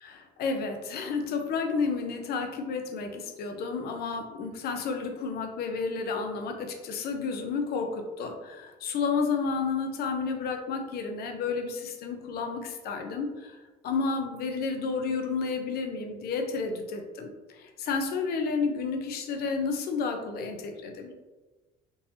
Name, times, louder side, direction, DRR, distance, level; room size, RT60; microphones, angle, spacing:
voice 1, 0.0-13.6 13.8-21.1, left 4 dB, 65° left, 4 dB, 0.6 m, -31 dB
3.8 x 2.8 x 2.7 m, 1.2 s
cardioid pair, 110°, 17 cm